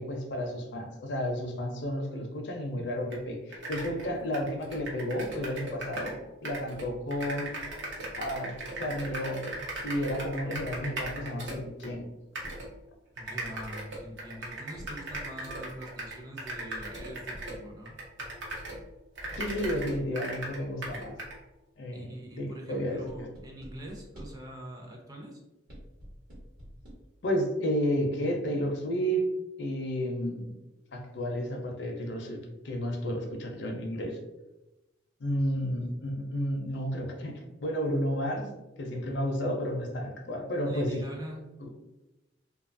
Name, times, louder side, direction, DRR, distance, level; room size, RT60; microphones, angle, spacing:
voice 1, 0.0-6.2 6.4-7.5 8.2-9.4 9.8-12.0 19.4-21.2 21.8-22.1 22.4-23.3 27.2-29.2 29.6-30.5 30.9-32.4 32.6-34.2 35.2-38.5 38.8-41.0 41.6-41.7, equal, 65° left, 3 dB, 0.5 m, -32 dB
sound 1, 3.1-3.2 3.5-6.2 6.4-11.9 12.4-12.7 13.2-18.8 19.2-21.4, right 1 dB, 75° right, 0.7 m, -38 dB
sound 2, 10.5-10.9 12.4-12.8 14.7-15.4 17.0-17.7 19.3-20.3 23.1-24.5 25.7-26.9, equal, 55° right, 1.0 m, -47 dB
voice 2, 13.2-17.9 21.9-25.4 40.7-41.4, right 1 dB, 20° right, 0 dB, 0.4 m, -43 dB
2.7 x 2.3 x 2.5 m, 1.0 s
head